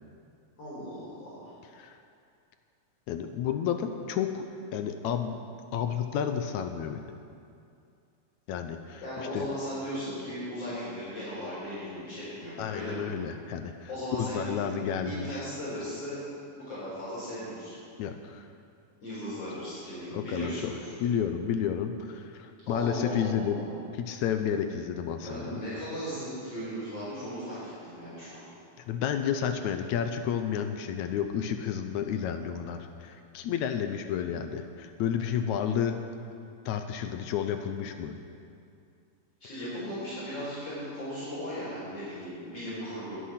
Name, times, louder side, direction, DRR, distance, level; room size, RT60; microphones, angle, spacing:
voice 1, 0.6-1.5 9.0-13.0 13.9-14.6 15.0-16.2 16.5-17.7 19.0-20.9 22.7-23.7 25.2-28.4 39.4-43.2, equal, 50° left, -9 dB, 5.0 m, -37 dB
voice 2, 3.1-4.4 4.7-5.5 5.7-7.0 8.5-9.0 9.3-9.5 12.6-15.4 18.0-18.5 20.1-20.7 21.0-23.7 23.9-25.6 28.9-36.0 36.7-38.2, left 8 dB, 75° left, 7 dB, 2.0 m, -31 dB
21.0 x 8.5 x 5.8 m, 2.4 s
omnidirectional pair, 3.6 m